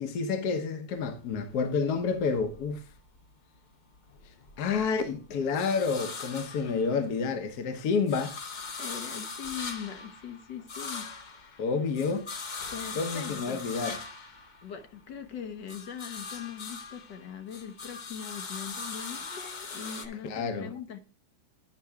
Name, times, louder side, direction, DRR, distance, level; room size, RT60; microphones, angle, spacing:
voice 1, 0.0-2.8 4.6-8.4 11.6-12.3 12.9-14.0 20.2-20.7, left 5 dB, 70° left, 1.5 m, -29 dB
sound 1, 1.0-3.3 3.7-7.4 7.7-15.2 15.5-20.1, left 4 dB, 40° left, 0.7 m, -41 dB
voice 2, 8.8-11.6 12.7-13.6 14.6-21.0, left 8 dB, 85° left, 1.7 m, -41 dB
10.0 x 6.0 x 3.4 m
omnidirectional pair, 1.8 m